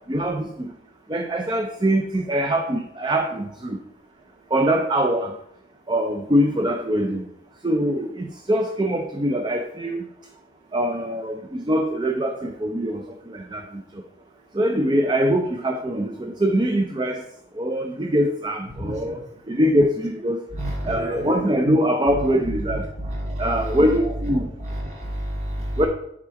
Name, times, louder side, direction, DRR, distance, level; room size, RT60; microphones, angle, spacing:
voice 1, 0.1-0.7 1.1-3.8 4.5-5.3 5.9-7.2 7.6-10.1 10.7-13.8 14.5-17.2 17.6-19.2 19.5-20.4 20.9-22.8 23.4-24.5 25.8-25.9, equal, 25° right, 4 dB, 0.5 m, -23 dB
voice 2, 18.7-19.2 20.5-21.7 22.1-25.9, equal, 40° right, -2 dB, 1.9 m, -30 dB
10.5 x 3.6 x 4.6 m, 0.76 s
head